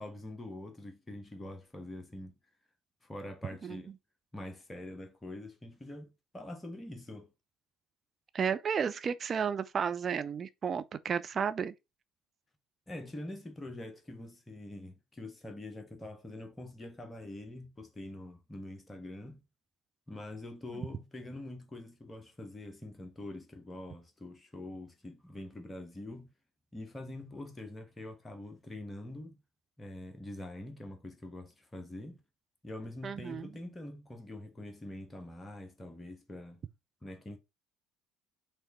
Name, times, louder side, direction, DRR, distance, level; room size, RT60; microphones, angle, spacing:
voice 1, 0.0-2.4 3.0-3.9 4.3-7.3 12.9-19.4 20.1-26.3 26.7-29.4 29.8-32.2 32.6-36.6 37.0-37.4, left 1 dB, 20° left, 1.3 m, -45 dB
voice 2, 8.3-11.7 20.7-20.8 33.0-33.5, right 7 dB, 35° right, 0.7 m, -33 dB
5.7 x 3.4 x 5.4 m
figure-of-eight pair, 55°, 0 cm